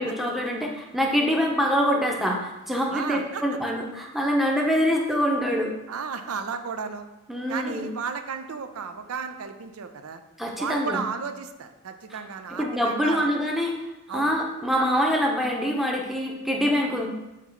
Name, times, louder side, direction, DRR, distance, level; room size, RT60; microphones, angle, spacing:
voice 1, 0.0-5.7 7.3-7.9 10.4-11.0 12.1-12.2 12.5-13.7 14.1-17.1, equal, ahead, 0 dB, 0.7 m, -25 dB
voice 2, 2.9-3.4 5.9-7.1 7.5-10.2 10.6-13.3 14.1-14.3, right 5 dB, 85° right, 8 dB, 0.5 m, -33 dB
5.9 x 3.0 x 5.7 m, 0.99 s
head